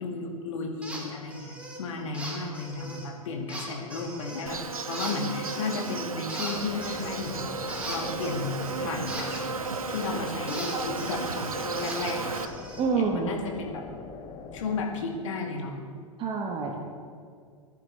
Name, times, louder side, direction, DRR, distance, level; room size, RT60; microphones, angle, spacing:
voice 1, 0.0-4.6 4.9-9.3 9.9-12.5 12.9-13.8 14.5-15.7, left 3 dB, 65° left, 1 dB, 2.2 m, -34 dB
sound 1, 0.8-1.0 1.3-1.8 2.1-3.1 3.5-4.5 4.9-6.0 6.3-10.1 10.5-12.9, right 1 dB, 5° right, 2.7 m, -39 dB
Insect, 4.5-12.5, right 4 dB, 85° right, 0.7 m, -34 dB
sound 2, 6.5-14.8, left 5 dB, 25° left, 1.0 m, -43 dB
voice 2, 12.8-13.3 16.2-17.0, right 5 dB, 30° right, 2 dB, 1.4 m, -28 dB
19.5 x 10.5 x 3.4 m, 2.1 s
figure-of-eight pair, 100°, 18 cm